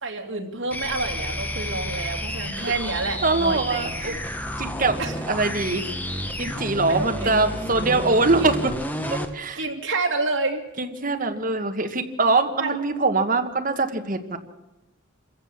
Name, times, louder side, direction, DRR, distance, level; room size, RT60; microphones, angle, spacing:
voice 1, 0.0-4.2 5.0-5.2 6.8-7.3 8.4-8.5 9.6-10.6 12.6-12.8, right 3 dB, 65° right, 1 dB, 2.7 m, -28 dB
sound 1, 0.7-9.3, equal, 10° left, 1.1 m, -31 dB
voice 2, 3.2-4.1 4.6-5.0 5.3-5.9 6.4-8.7 9.1-9.6 10.8-14.4, right 3 dB, 40° right, 5 dB, 1.4 m, -23 dB
26.0 x 15.0 x 7.3 m, 1.0 s
head